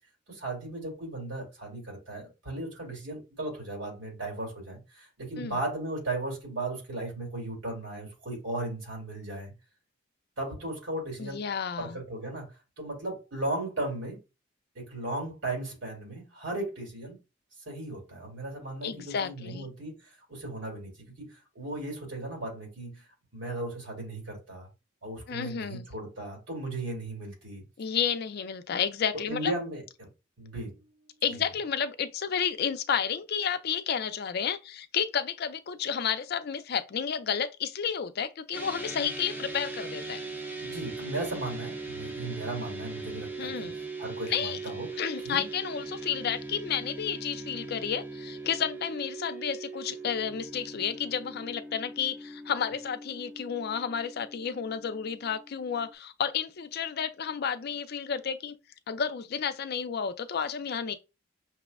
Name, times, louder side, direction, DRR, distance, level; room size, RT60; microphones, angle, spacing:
voice 1, 0.3-9.5 10.4-11.4 11.8-12.5 12.8-14.2 14.7-17.2 17.7-23.1 23.3-24.7 25.0-27.6 29.3-30.1 30.4-30.8 31.3-31.4 40.6-43.5 44.0-45.4, right 2 dB, 80° right, 2.1 m, -36 dB
voice 2, 11.2-12.0 18.8-19.7 25.3-25.8 27.8-29.5 31.2-40.2 43.4-43.7 44.3-44.6 45.0-58.6 58.9-60.9, left 7 dB, 55° left, 0.4 m, -31 dB
sound 1, 38.5-55.9, right 3 dB, 10° right, 0.5 m, -40 dB
5.8 x 2.1 x 2.3 m
head